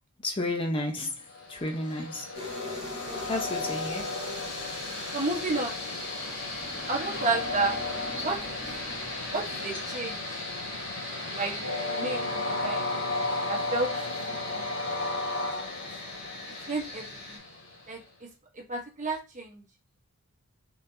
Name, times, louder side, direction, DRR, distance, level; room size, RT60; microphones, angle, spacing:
voice 1, 0.2-1.1 1.5-2.2 3.3-4.1, left 2 dB, 25° left, 0.6 m, -31 dB
Train, 1.3-18.0, left 2 dB, 70° left, 2.0 m, -34 dB
sound 1, 2.3-17.4, left 1 dB, 50° left, 2.1 m, -41 dB
voice 2, 5.1-5.8 6.9-7.8 8.2-8.6 9.3-10.2 11.4-12.9 13.5-13.9 14.3-14.7 15.3-15.4 16.7-17.4 17.9-18.3 18.7-19.6, right 3 dB, 35° right, 1.0 m, -32 dB
4.1 x 4.0 x 2.6 m
head